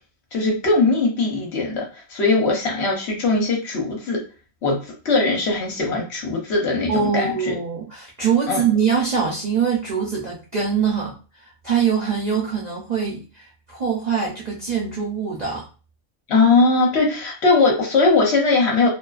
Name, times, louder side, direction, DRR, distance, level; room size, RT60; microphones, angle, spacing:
voice 1, 0.3-1.8 2.1-4.2 4.6-4.8 5.0-7.6 8.5-8.6 16.3-18.9, left 3 dB, 55° left, 0 dB, 0.9 m, -20 dB
voice 2, 6.9-11.1 11.6-15.6, right 6 dB, 55° right, -3 dB, 0.4 m, -23 dB
2.5 x 2.3 x 2.3 m, 0.35 s
omnidirectional pair, 1.4 m